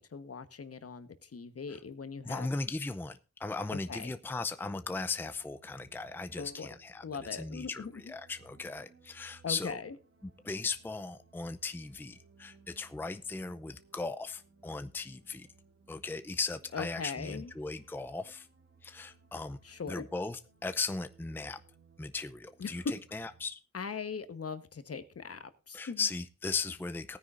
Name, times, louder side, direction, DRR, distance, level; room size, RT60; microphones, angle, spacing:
voice 1, 0.0-2.5 3.7-4.1 6.3-6.7 7.0-8.1 9.4-9.9 16.7-17.5 19.6-20.0 22.6-22.9 23.7-26.1, left 5 dB, 50° left, 11 dB, 1.2 m, -40 dB
voice 2, 2.2-7.0 7.3-9.8 10.2-15.5 15.9-18.5 18.8-19.6 19.9-21.6 22.0-23.6 25.7-27.2, left 4 dB, 5° left, 11 dB, 0.6 m, -37 dB
sound 1, 5.1-23.5, right 5 dB, 50° right, 2.5 m, -63 dB
18.5 x 9.7 x 2.6 m, 0.33 s
wide cardioid pair, 110°, 30 cm